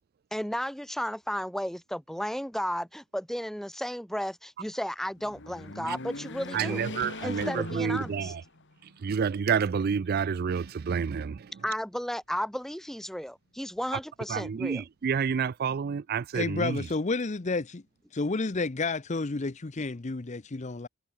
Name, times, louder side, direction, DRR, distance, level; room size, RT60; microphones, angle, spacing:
voice 1, 0.3-6.8 7.2-8.4 11.6-14.8, equal, ahead, 2.0 m, -34 dB
sound 1, 5.2-8.8 9.3-9.4 10.4-11.2, left 2 dB, 55° left, 2.2 m, -40 dB
voice 2, 6.5-7.5 7.7-8.4 9.0-11.4 14.3-16.8, right 6 dB, 45° right, 0.4 m, -29 dB
voice 3, 16.3-17.8 18.1-20.9, left 3 dB, 35° left, 0.7 m, -30 dB
head